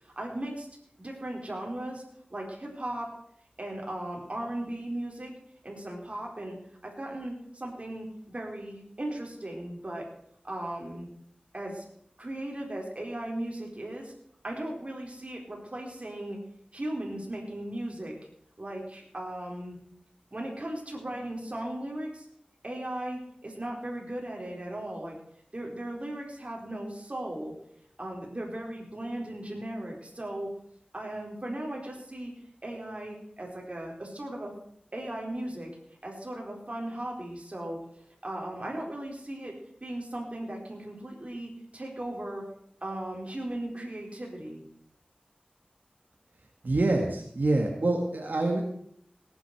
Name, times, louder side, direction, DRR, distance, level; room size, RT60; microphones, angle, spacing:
voice 1, 0.2-0.7 1.0-2.0 2.3-3.1 3.6-5.3 5.6-6.6 6.8-10.0 10.4-11.1 11.5-11.8 12.2-14.1 14.4-16.4 16.7-18.1 18.6-19.8 20.3-22.3 22.6-25.2 25.5-27.5 28.0-30.5 30.9-32.3 32.6-34.5 34.9-35.7 36.0-37.8 38.2-39.5 39.8-42.4 42.8-44.6, right 1 dB, 45° right, -1 dB, 4.4 m, -37 dB
voice 2, 46.6-48.6, right 2 dB, 90° right, 1 dB, 1.9 m, -26 dB
18.0 x 9.8 x 4.9 m, 0.68 s
wide cardioid pair, 55°, 3 cm